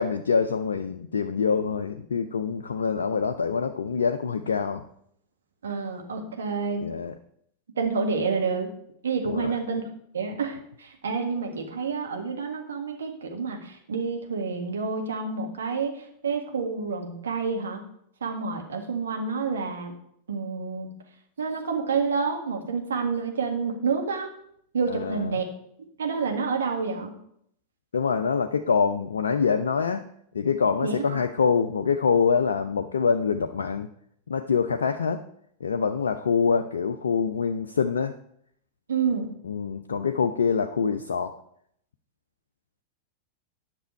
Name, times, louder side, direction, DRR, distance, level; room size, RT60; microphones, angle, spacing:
voice 1, 0.0-4.8 6.8-7.1 9.3-9.5 24.9-25.3 27.9-30.0 30.3-33.9 34.3-35.2 35.6-38.1 39.4-41.3, left 5 dB, 70° left, 6 dB, 0.5 m, -25 dB
voice 2, 5.6-6.9 7.7-8.7 9.0-9.8 10.1-17.8 18.2-20.0 20.3-20.9 21.4-24.3 24.7-25.5 26.0-27.1 30.8-31.2 38.9-39.3, right 5 dB, 65° right, 3 dB, 1.7 m, -28 dB
10.5 x 6.1 x 4.5 m, 0.69 s
figure-of-eight pair, 90°, 0 cm